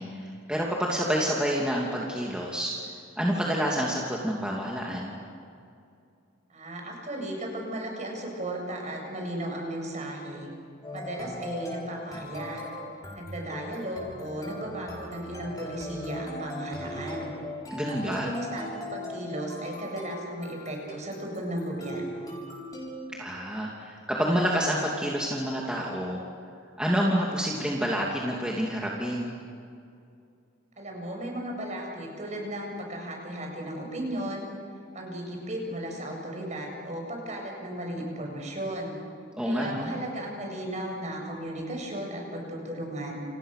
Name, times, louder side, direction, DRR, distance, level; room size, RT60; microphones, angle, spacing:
voice 1, 0.0-2.7 3.2-5.1 17.7-18.3 23.2-26.2 26.8-29.3 39.4-39.9, equal, 5° right, -3 dB, 2.8 m, -28 dB
voice 2, 6.5-10.5 10.9-12.7 13.1-17.3 17.9-22.4 30.8-34.5 34.9-39.0 39.4-43.2, right 1 dB, 35° right, 1 dB, 7.6 m, -35 dB
sound 1, 10.8-23.0, left 1 dB, 20° left, 7.5 m, -40 dB
30.0 x 29.5 x 6.8 m, 2.4 s
head